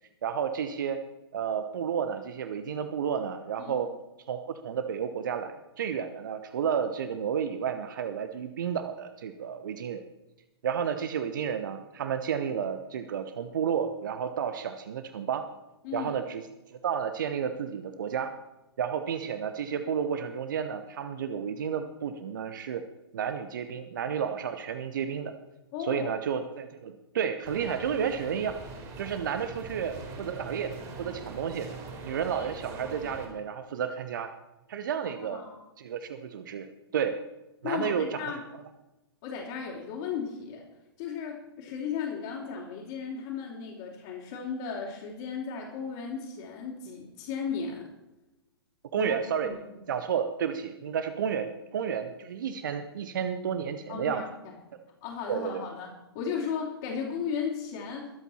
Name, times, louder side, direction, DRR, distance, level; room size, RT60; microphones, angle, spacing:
voice 1, 0.2-1.0 1.3-3.9 4.3-10.0 10.6-15.4 15.9-16.4 16.7-18.4 18.8-22.8 23.1-25.3 25.8-28.6 29.0-31.7 32.0-34.3 34.7-35.4 35.8-37.2 37.6-38.6 48.9-49.5 49.9-54.2 55.3-55.6, right 7 dB, 50° right, 10 dB, 1.0 m, -31 dB
voice 2, 15.8-16.2 25.7-26.1 35.3-35.6 37.6-38.4 39.2-40.6 41.0-47.9 48.9-49.1 49.4-49.8 53.9-54.5 55.0-55.9 56.1-58.1, left 6 dB, 35° left, -5 dB, 3.2 m, -35 dB
sound 1, 27.4-33.3, right 4 dB, 25° right, 3.4 m, -42 dB
23.0 x 8.2 x 4.3 m, 0.98 s
figure-of-eight pair, 115°, 13 cm